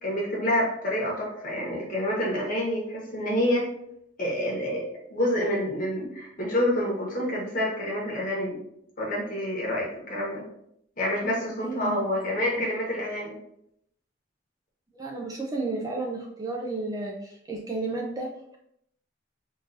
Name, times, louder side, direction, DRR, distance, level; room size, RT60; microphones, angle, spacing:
voice 1, 0.0-3.7 4.2-8.6 9.0-10.4 11.0-13.4, left 1 dB, 45° left, -3 dB, 1.1 m, -28 dB
voice 2, 11.6-12.0 12.5-12.7 15.0-18.3, right 3 dB, 20° right, 0 dB, 0.4 m, -32 dB
3.7 x 2.5 x 2.6 m, 0.74 s
head